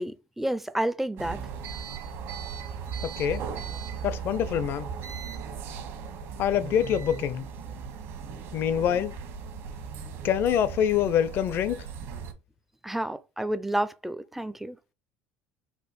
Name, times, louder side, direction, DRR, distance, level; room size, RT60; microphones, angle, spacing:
voice 1, 0.0-1.4 12.8-14.8, right 1 dB, 5° right, 0.4 m, -30 dB
sound 1, 1.2-12.3, right 6 dB, 60° right, 1.2 m, -37 dB
voice 2, 3.0-3.5 4.0-4.9 6.4-7.5 8.5-9.2 10.2-11.9, left 9 dB, 55° left, 0.5 m, -25 dB
4.4 x 2.5 x 4.1 m
supercardioid pair, 105°, 5 cm